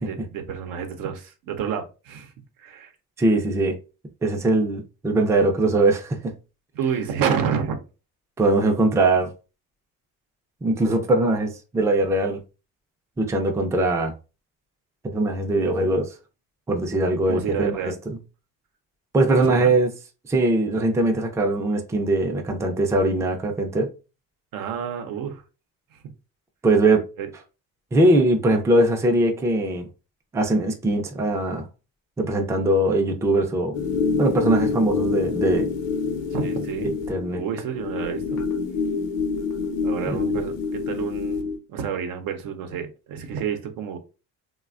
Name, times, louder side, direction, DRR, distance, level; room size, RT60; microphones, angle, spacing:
voice 1, 0.0-2.3 2.6-2.9 6.7-7.8 17.3-18.0 19.4-19.7 24.5-25.4 25.9-26.0 27.2-27.3 36.3-36.9 37.3-38.4 39.8-41.4 41.7-44.0, right 7 dB, 80° right, 0.7 m, -29 dB
voice 2, 3.2-3.8 4.2-6.3 8.4-9.3 10.6-12.4 13.2-14.1 15.1-16.1 16.7-17.9 19.1-19.9 20.3-23.9 26.6-27.1 27.9-29.9 30.3-31.7 32.2-33.8 34.2-35.7 36.8-37.4 40.1-40.2, right 2 dB, 10° right, 0.3 m, -21 dB
sound 1, 33.7-41.6, left 5 dB, 70° left, 0.6 m, -26 dB
3.2 x 2.2 x 2.4 m
cardioid pair, 120°, 33 cm